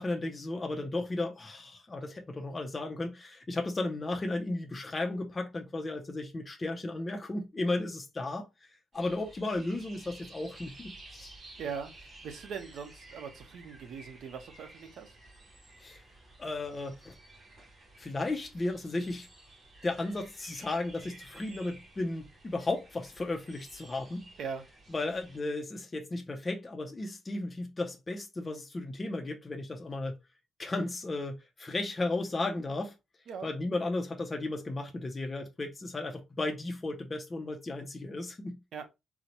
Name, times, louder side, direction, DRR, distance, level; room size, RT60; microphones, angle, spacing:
voice 1, 0.0-8.7 8.9-11.3 15.8-16.0 16.4-17.1 18.0-19.3 19.8-24.3 24.9-30.1 30.6-32.9 33.4-38.6, left 2 dB, 20° left, 0.4 m, -34 dB
sound 1, 8.9-25.4, right 2 dB, 40° right, 1.8 m, -53 dB
voice 2, 11.6-15.1 24.4-24.6 33.3-33.5 38.7-38.8, right 6 dB, 70° right, 0.7 m, -41 dB
4.0 x 2.0 x 2.8 m
wide cardioid pair, 175°, 0 cm